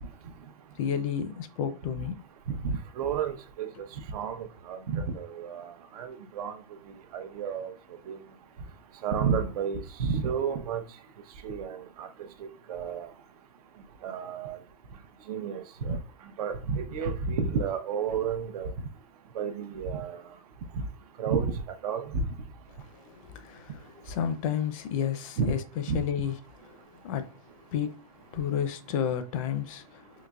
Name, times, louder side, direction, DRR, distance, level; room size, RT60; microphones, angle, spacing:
voice 1, 0.8-2.2 23.0-23.7 24.0-26.4 27.0-27.3 27.7-28.0 28.3-30.1, left 8 dB, 65° left, 0.5 m, -31 dB
voice 2, 2.5-3.7 4.1-6.5 7.1-7.7 8.1-8.2 9.0-10.8 11.4-12.1 12.7-13.1 14.0-14.6 15.3-16.0 16.4-18.7 19.3-20.2 20.8-20.9 21.2-21.5 21.8-22.2 25.4-25.5 25.9-26.0, right 6 dB, 85° right, 0.7 m, -31 dB
3.9 x 3.0 x 2.3 m
supercardioid pair, 160°, 19 cm